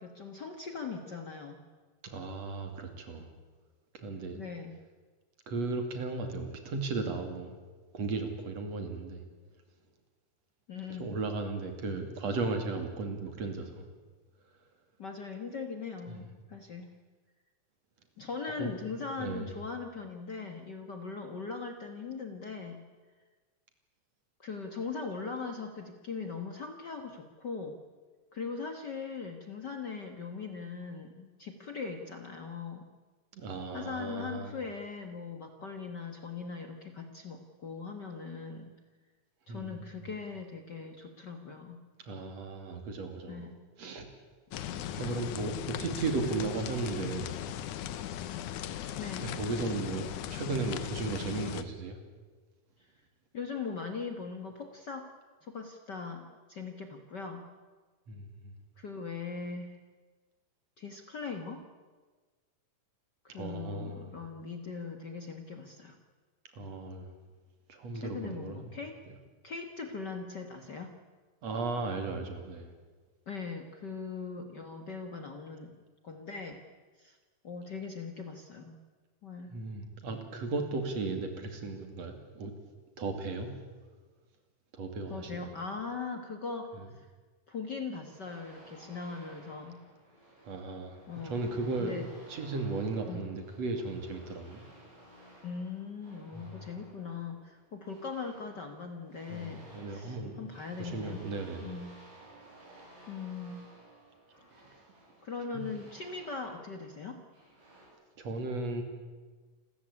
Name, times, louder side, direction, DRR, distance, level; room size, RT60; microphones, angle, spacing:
voice 1, 0.0-1.6 4.3-4.7 10.7-11.1 15.0-16.9 18.2-22.8 24.4-27.8 28.3-32.9 33.7-38.7 39.5-41.8 43.3-43.6 44.5-44.8 49.0-49.3 52.8-52.9 53.3-55.1 55.4-57.5 58.8-59.8 60.8-61.6 63.2-66.0 67.9-69.0 69.4-70.9 73.3-75.8 76.0-76.6 77.0-77.2 77.4-78.8 79.2-79.5 85.1-87.1 87.5-89.8 91.1-91.4 91.8-92.1 93.1-93.2 95.4-101.2 101.6-102.0 103.1-103.6 104.5-104.7 105.2-107.2, left 5 dB, 45° left, 6 dB, 1.6 m, -40 dB
voice 2, 2.0-3.3 3.9-4.4 5.5-7.5 7.9-9.2 11.0-13.9 16.1-16.3 18.6-18.7 19.2-19.5 33.3-34.5 39.5-39.8 42.0-43.5 43.8-44.1 44.9-47.3 49.2-52.0 58.1-58.5 63.3-64.2 66.5-67.1 67.7-68.6 71.4-72.7 79.5-82.5 83.0-83.5 84.7-85.5 90.4-92.0 92.3-94.6 96.3-96.5 99.3-100.4 100.8-101.8 105.5-105.6 108.2-108.8, right 3 dB, 60° right, 6 dB, 3.6 m, -35 dB
sound 1, 44.5-51.6, left 11 dB, 85° left, 2.5 m, -38 dB
sound 2, 88.1-107.9, right 1 dB, 90° right, 9.3 m, -55 dB
28.5 x 14.5 x 9.8 m, 1.4 s
omnidirectional pair, 3.4 m